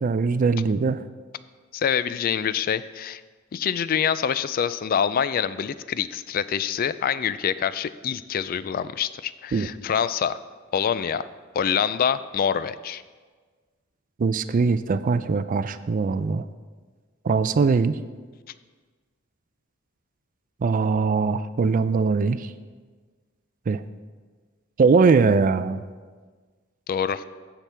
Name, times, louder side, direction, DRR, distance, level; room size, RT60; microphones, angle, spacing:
voice 1, 0.0-1.0 9.5-9.7 14.2-16.4 17.2-17.9 20.6-22.5 23.7-23.8 24.8-25.8, right 4 dB, 40° right, 13 dB, 0.3 m, -21 dB
voice 2, 1.7-3.2 3.5-10.4 10.7-11.3 11.5-13.0 26.9-27.2, left 8 dB, 45° left, 16 dB, 0.3 m, -25 dB
15.5 x 6.0 x 3.4 m, 1.5 s
head